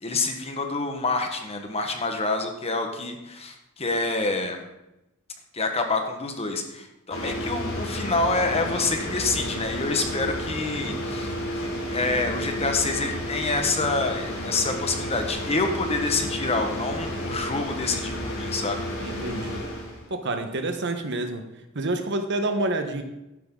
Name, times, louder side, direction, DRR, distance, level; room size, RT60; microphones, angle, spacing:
voice 1, 0.0-4.6 5.5-18.8, left 3 dB, 30° left, 5 dB, 1.4 m, -27 dB
sound 1, 7.1-20.1, equal, 80° left, 3.3 m, -32 dB
voice 2, 19.0-19.6 20.1-21.4 21.7-23.0, right 2 dB, 55° right, 7 dB, 1.2 m, -28 dB
12.5 x 10.0 x 3.9 m, 0.92 s
head